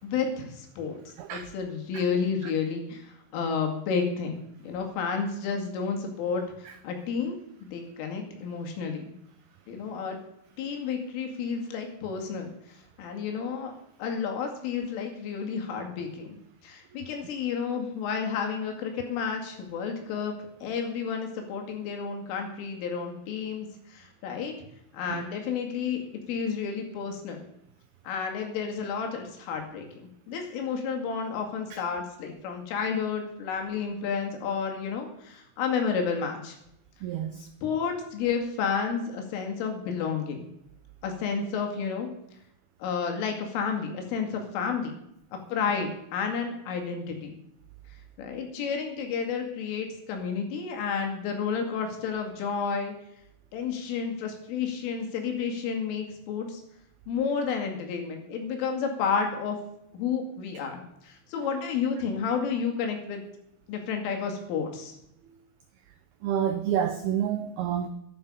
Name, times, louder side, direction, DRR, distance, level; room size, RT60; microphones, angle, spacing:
voice 1, 0.0-3.1 3.3-9.0 9.7-10.2 10.6-12.5 13.0-13.7 14.0-16.4 16.6-20.3 20.6-24.5 24.9-26.0 26.3-27.4 28.0-36.6 37.4-40.5 41.0-42.1 42.8-44.9 45.3-47.4 48.2-52.9 53.5-56.6 57.1-59.6 59.9-63.2 63.7-64.9, left 6 dB, 90° left, 4.9 m, -31 dB
voice 2, 37.0-37.3 66.2-67.9, right 9 dB, 85° right, 2.2 m, -28 dB
13.5 x 11.5 x 5.5 m
omnidirectional pair, 5.6 m